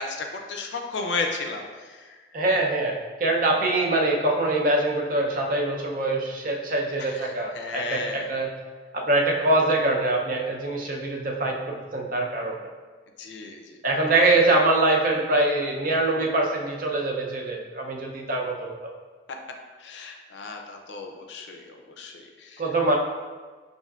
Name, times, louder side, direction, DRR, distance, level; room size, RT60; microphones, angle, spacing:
voice 1, 0.0-2.1 7.0-8.3 13.2-13.8 19.8-22.6, left 3 dB, 80° left, 3 dB, 0.5 m, -34 dB
voice 2, 2.3-8.5 8.9-12.5 13.8-18.8 22.6-23.0, right 2 dB, 50° right, 0 dB, 0.5 m, -24 dB
5.5 x 2.6 x 2.3 m, 1.4 s
head